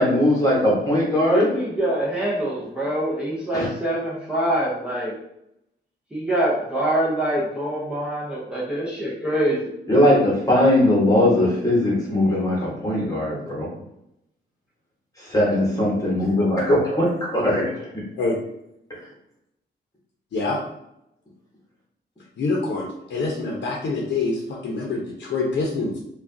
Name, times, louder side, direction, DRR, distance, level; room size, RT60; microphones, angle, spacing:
voice 1, 0.0-1.5 3.5-3.7 9.9-13.7 15.2-17.9, left 1 dB, 20° left, -5 dB, 1.1 m, -20 dB
voice 2, 1.3-5.2 6.1-9.7, right 1 dB, 5° right, -7 dB, 0.7 m, -24 dB
voice 3, 22.4-26.0, left 3 dB, 70° left, -2 dB, 0.8 m, -25 dB
4.8 x 2.4 x 2.7 m, 0.81 s
wide cardioid pair, 155°, 19 cm